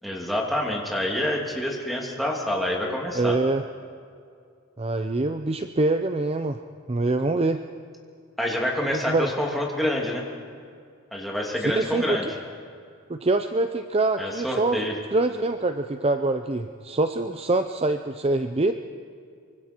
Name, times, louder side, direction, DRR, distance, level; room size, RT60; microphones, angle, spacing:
voice 1, 0.0-3.4 8.4-10.2 11.1-12.3 14.2-14.9, left 1 dB, ahead, -2 dB, 2.6 m, -27 dB
voice 2, 3.1-3.6 4.8-6.6 6.9-7.6 8.9-9.3 11.6-12.3 13.1-14.9 15.1-18.7, right 2 dB, 25° right, 8 dB, 0.5 m, -24 dB
25.0 x 23.5 x 4.5 m, 2.3 s
head